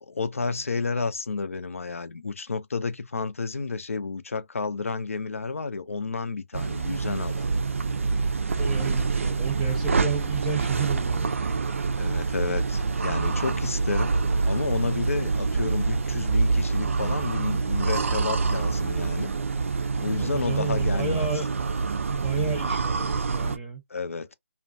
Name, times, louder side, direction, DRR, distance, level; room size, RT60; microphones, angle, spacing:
voice 1, 0.0-7.5 12.0-14.1 14.4-19.3 20.0-21.3 23.9-24.3, left 4 dB, 80° left, 0.5 m, -31 dB
sound 1, 6.5-23.6, right 4 dB, 70° right, 0.4 m, -26 dB
voice 2, 8.6-11.4 20.2-21.5 22.1-23.8, right 5 dB, 15° right, 0.6 m, -32 dB
2.4 x 2.2 x 2.5 m
figure-of-eight pair, 145°, 7 cm